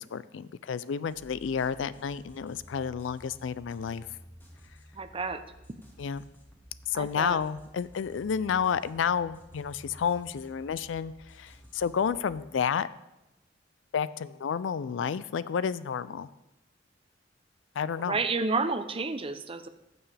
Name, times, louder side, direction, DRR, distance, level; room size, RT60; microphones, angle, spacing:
voice 1, 0.0-4.0 6.0-6.2 6.9-12.9 13.9-16.3 17.8-18.2, left 7 dB, 80° left, 16 dB, 0.4 m, -30 dB
sound 1, 1.1-12.4, equal, 10° left, 1.3 m, -53 dB
voice 2, 4.9-5.4 6.9-7.4 18.0-19.7, right 4 dB, 30° right, 10 dB, 0.5 m, -30 dB
14.5 x 6.9 x 3.4 m, 0.98 s
head